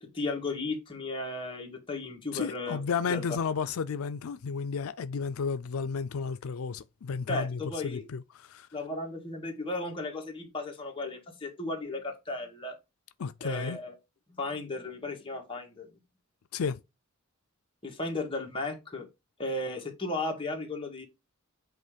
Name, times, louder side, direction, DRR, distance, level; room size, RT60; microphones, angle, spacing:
voice 1, 0.0-2.8 3.1-3.2 7.3-8.0 8.7-12.8 13.4-13.9 14.4-15.9 17.8-19.1 19.4-21.0, left 2 dB, 25° left, 2.0 m, -35 dB
voice 2, 2.3-8.7 13.2-13.8 16.5-16.8, left 5 dB, 85° left, 0.5 m, -33 dB
8.2 x 3.1 x 5.1 m
head